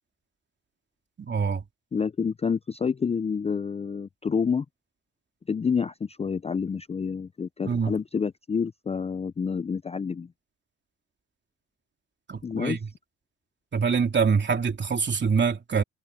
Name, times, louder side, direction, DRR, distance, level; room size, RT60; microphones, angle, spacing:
voice 1, 1.2-1.6 7.6-7.9 12.3-12.9 13.7-15.8, right 5 dB, 35° right, 3.0 m, -25 dB
voice 2, 1.9-4.7 5.5-10.3 12.4-12.8, left 6 dB, 20° left, 0.4 m, -28 dB
cardioid pair, 90°, 30 cm